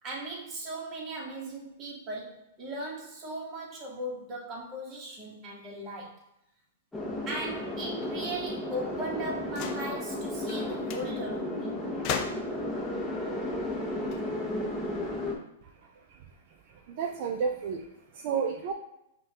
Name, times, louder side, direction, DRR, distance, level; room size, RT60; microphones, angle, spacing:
voice 1, 0.0-6.2 7.3-11.8, right 1 dB, 25° right, -2 dB, 1.1 m, -38 dB
sound 1, 6.9-15.3, left 1 dB, 5° left, 0.7 m, -33 dB
sound 2, 9.5-10.0 10.5-10.6 10.9-11.1 12.0-12.7 13.9-15.0, left 7 dB, 40° left, 0.4 m, -36 dB
voice 2, 15.6-18.7, right 6 dB, 50° right, 2 dB, 0.4 m, -33 dB
5.4 x 2.3 x 2.8 m, 0.82 s
hypercardioid pair, 140°, 0 cm